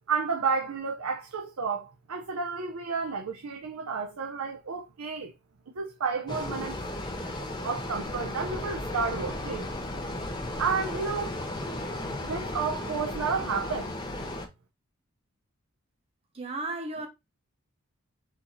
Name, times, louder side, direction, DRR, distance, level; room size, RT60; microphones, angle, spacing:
voice 1, 0.1-5.3 5.8-7.2 7.6-9.7 10.6-11.7 12.2-13.9, right 5 dB, 85° right, 0.6 m, -31 dB
sound 1, 6.3-14.5, left 1 dB, 20° left, 0.7 m, -35 dB
voice 2, 16.3-17.1, right 2 dB, 25° right, 0.7 m, -34 dB
4.5 x 2.7 x 3.9 m
head